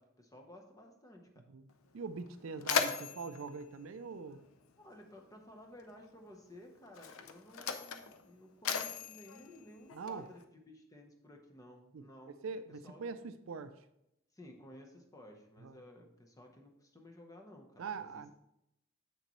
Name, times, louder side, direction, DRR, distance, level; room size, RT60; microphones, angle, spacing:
voice 1, 0.0-1.5 2.6-2.7 4.8-12.5 12.8-13.5 14.3-18.3, left 1 dB, 15° left, 2 dB, 0.9 m, -55 dB
Mechanisms, 1.7-1.8 2.2-4.9 5.9-6.0 6.9-10.4, left 7 dB, 80° left, 0.5 m, -38 dB
voice 2, 1.9-4.4 9.9-10.3 11.9-13.8 15.6-15.8 17.8-18.3, right 5 dB, 70° right, 12 dB, 0.4 m, -43 dB
6.9 x 6.5 x 3.1 m, 0.82 s
head